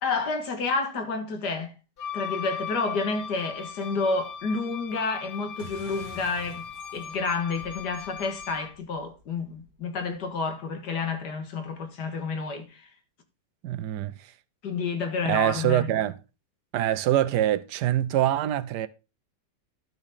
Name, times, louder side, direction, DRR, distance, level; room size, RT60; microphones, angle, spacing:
voice 1, 0.0-1.7 2.1-6.7 6.9-12.9 14.6-15.9, left 4 dB, 75° left, 2.1 m, -30 dB
Wind instrument woodwind instrument, 2.0-8.8, left 7 dB, 60° left, 0.6 m, -39 dB
sound 1, 5.6-10.5, right 1 dB, 45° right, 2.0 m, -49 dB
voice 2, 13.6-14.1 15.3-16.1 16.7-18.9, right 12 dB, 80° right, 1.2 m, -24 dB
12.0 x 6.0 x 4.1 m
omnidirectional pair, 1.8 m